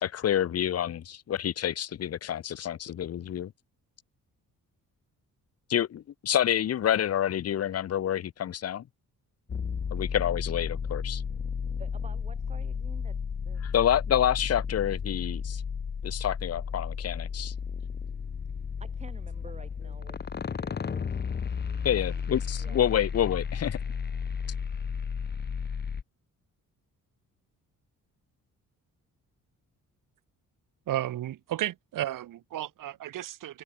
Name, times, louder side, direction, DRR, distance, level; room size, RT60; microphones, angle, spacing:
voice 1, 0.0-3.5 5.7-8.8 9.9-11.2 13.6-15.6 16.0-17.5 21.8-23.8, left 10 dB, 45° left, 1.2 m, -28 dB
sound 1, 9.5-26.0, left 6 dB, 30° left, 1.8 m, -33 dB
voice 2, 11.8-13.7 18.8-21.2 21.6-21.8 22.6-22.8, right 4 dB, 20° right, 5.0 m, -51 dB
voice 3, 30.9-33.6, right 13 dB, 70° right, 1.5 m, -33 dB
wide cardioid pair, 175°, 34 cm